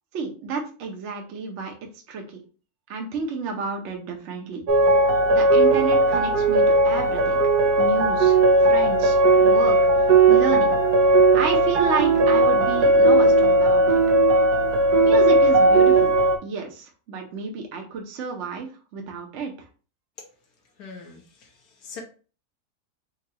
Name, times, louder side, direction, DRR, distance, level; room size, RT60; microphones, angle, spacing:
voice 1, 0.1-1.7 2.1-2.4 2.9-4.6 5.3-7.4 7.8-10.8 11.3-14.0 15.0-16.2 16.4-18.7 18.9-19.5, right 5 dB, 55° right, 2 dB, 1.1 m, -31 dB
sound 1, 4.7-16.4, right 2 dB, 90° right, 1.3 m, -17 dB
voice 2, 20.8-21.2 21.8-22.0, left 5 dB, 70° left, -1 dB, 1.7 m, -40 dB
4.7 x 2.9 x 2.8 m, 0.37 s
omnidirectional pair, 1.6 m